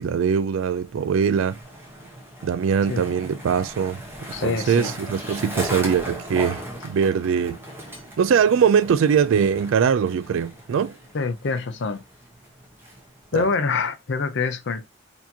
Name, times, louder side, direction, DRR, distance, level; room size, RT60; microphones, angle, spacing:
voice 1, 0.0-1.6 2.4-4.0 4.4-7.6 8.2-10.9 13.4-13.5, right 7 dB, 70° right, 0.3 m, -21 dB
Skateboard, 0.7-13.4, equal, 10° right, 1.0 m, -38 dB
voice 2, 4.3-4.9 11.1-12.0 13.3-14.9, left 4 dB, 60° left, 0.5 m, -25 dB
4.3 x 2.8 x 2.8 m
head